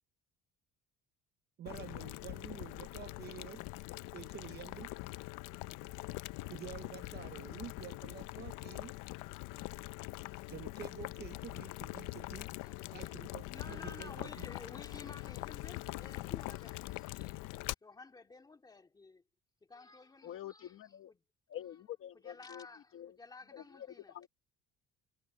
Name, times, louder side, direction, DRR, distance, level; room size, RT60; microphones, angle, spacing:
voice 1, 1.6-3.6 4.1-4.9 6.4-8.9 10.5-12.5 12.9-14.5, right 11 dB, 35° right, 0.6 m, -49 dB
Boiling, 1.7-17.7, left 20 dB, 80° left, 0.6 m, -43 dB
voice 2, 12.5-13.2 13.5-17.3 17.8-19.2 19.7-20.8 21.1-21.2 22.1-24.2, left 3 dB, 15° left, 2.1 m, -53 dB
voice 3, 20.2-21.1 21.5-22.7 22.9-23.1 23.5-24.3, left 11 dB, 45° left, 1.1 m, -47 dB
cardioid pair, 175°, 30 cm